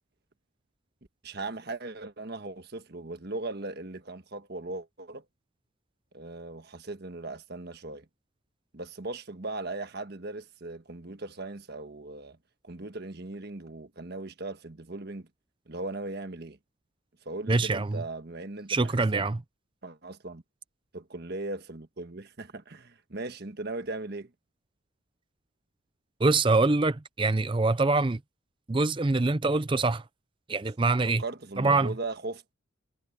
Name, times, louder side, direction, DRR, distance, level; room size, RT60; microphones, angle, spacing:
voice 1, 1.2-5.2 6.1-8.1 8.7-12.4 12.6-15.3 15.7-16.6 17.2-19.3 19.8-20.4 20.9-24.3 31.2-32.5, right 2 dB, 50° right, 1.4 m, -38 dB
voice 2, 17.5-18.0 18.7-19.4 26.2-28.2 28.7-30.0 30.5-31.2 31.6-31.9, right 3 dB, 25° right, 0.5 m, -24 dB
head